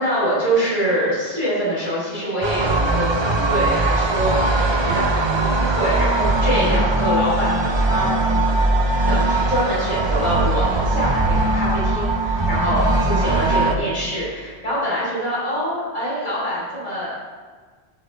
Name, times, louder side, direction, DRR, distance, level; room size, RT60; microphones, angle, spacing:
voice 1, 0.0-4.4 4.8-8.1 9.1-17.1, equal, 35° left, -8 dB, 3.5 m, -24 dB
sound 1, 2.4-13.8, right 2 dB, 30° right, 0.6 m, -20 dB
15.0 x 7.3 x 3.3 m, 1.5 s
omnidirectional pair, 1.1 m